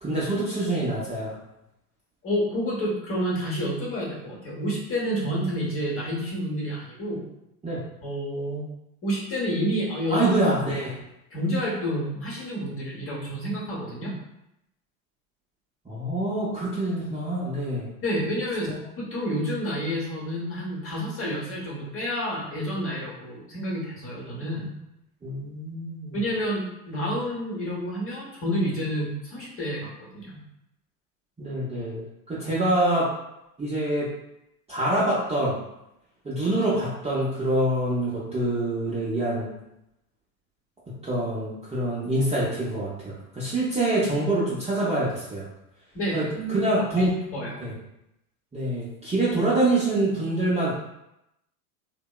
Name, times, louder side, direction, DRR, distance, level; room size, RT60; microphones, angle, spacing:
voice 1, 0.0-1.4 7.6-7.8 10.1-11.0 15.9-17.9 18.7-18.8 25.2-26.2 31.4-33.0 33.6-34.1 34.7-35.5 36.2-39.5 41.0-45.5 46.1-47.1 47.6-47.7 48.5-50.8, right 1 dB, 15° right, -8 dB, 0.7 m, -25 dB
voice 2, 2.2-7.2 8.0-8.7 9.0-10.3 11.3-14.1 18.0-24.7 26.1-30.4 45.9-46.7 47.0-47.7, equal, 30° left, -5 dB, 1.0 m, -29 dB
2.7 x 2.1 x 2.2 m, 0.85 s
hypercardioid pair, 85°, 45 cm